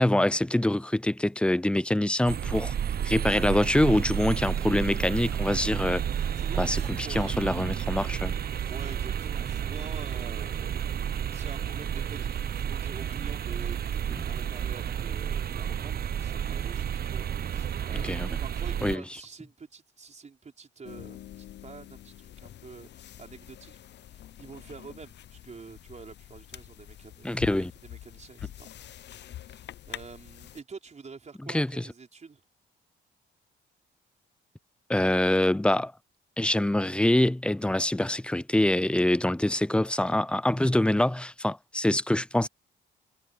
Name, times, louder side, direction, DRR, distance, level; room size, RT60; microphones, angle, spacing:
voice 1, 0.0-2.7 3.0-6.0 6.6-8.3 18.0-18.3 18.8-19.0 27.2-27.7 31.4-31.8 34.9-35.9 36.4-42.5, left 1 dB, 5° left, 0.5 m, -25 dB
sound 1, 2.3-19.0, right 9 dB, 50° right, 1.0 m, -31 dB
voice 2, 6.3-7.3 8.7-10.8 11.3-23.8 24.0-28.9 29.5-32.4, right 5 dB, 35° right, 5.1 m, -47 dB
sound 2, 20.8-30.6, left 12 dB, 60° left, 0.7 m, -45 dB
cardioid pair, 90°, 20 cm